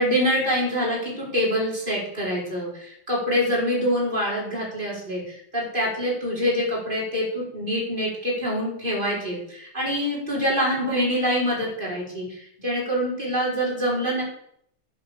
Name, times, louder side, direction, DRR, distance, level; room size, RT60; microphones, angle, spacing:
voice 1, 0.0-14.2, equal, 25° right, -4 dB, 5.1 m, -25 dB
11.0 x 10.5 x 6.7 m, 0.70 s
omnidirectional pair, 2.2 m